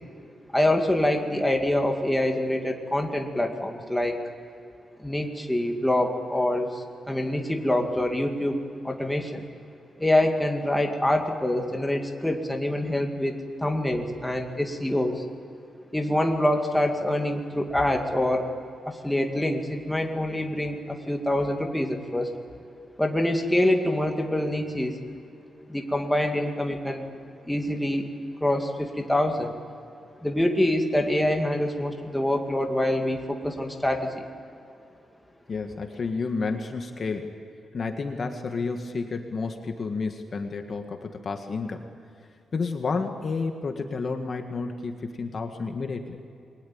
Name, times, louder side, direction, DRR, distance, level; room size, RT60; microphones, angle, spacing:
voice 1, 0.5-4.2 5.0-9.4 10.0-15.2 15.9-18.5 18.9-22.3 23.0-24.9 25.7-27.1 27.5-28.1 28.4-29.5 30.2-34.1, left 1 dB, 5° left, 2 dB, 2.2 m, -25 dB
voice 2, 35.5-37.3 37.7-41.8 42.5-46.2, left 4 dB, 40° left, 5 dB, 1.7 m, -30 dB
29.0 x 22.0 x 8.8 m, 2.5 s
wide cardioid pair, 170°, 0 cm